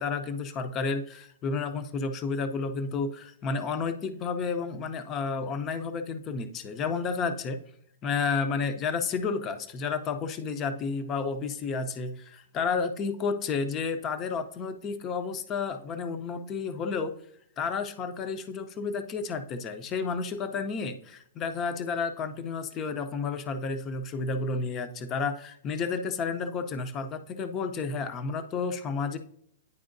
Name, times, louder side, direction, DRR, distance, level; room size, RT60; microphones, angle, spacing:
voice 1, 0.0-7.6 8.0-17.1 17.6-29.2, left 4 dB, 20° left, 9 dB, 0.5 m, -31 dB
9.5 x 4.4 x 2.5 m, 0.68 s
hypercardioid pair, 160°, 0 cm